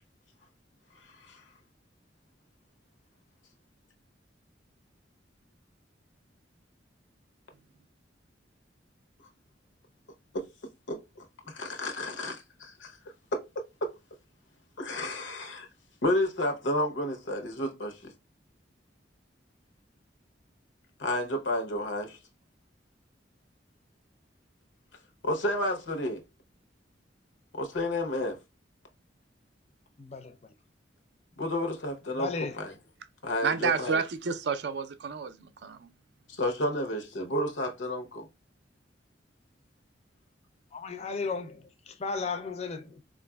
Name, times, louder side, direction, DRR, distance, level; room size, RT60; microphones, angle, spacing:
voice 1, 10.9-13.0 13.3-13.9 14.8-15.7 16.0-18.1 21.0-22.2 25.2-26.2 27.5-28.4 31.4-32.7 33.2-34.0 36.3-38.3, left 1 dB, 90° left, 0.8 m, -31 dB
voice 2, 30.0-30.4 32.2-32.6 40.7-43.0, left 4 dB, 35° left, 0.4 m, -35 dB
voice 3, 33.4-35.9, right 5 dB, 60° right, 0.4 m, -30 dB
4.6 x 2.4 x 2.2 m
head